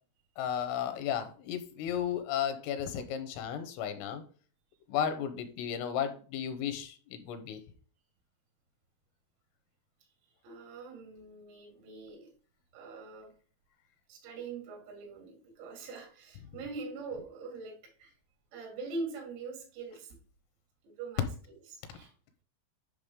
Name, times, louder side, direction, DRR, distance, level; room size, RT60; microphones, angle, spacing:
voice 1, 0.4-4.2 4.9-7.6, left 9 dB, 80° left, 3.6 m, -34 dB
voice 2, 10.4-12.3 12.7-13.3 14.1-18.2 18.5-20.2 20.8-21.3 21.7-22.1, right 3 dB, 90° right, 4.8 m, -43 dB
10.5 x 5.8 x 3.7 m
omnidirectional pair, 5.9 m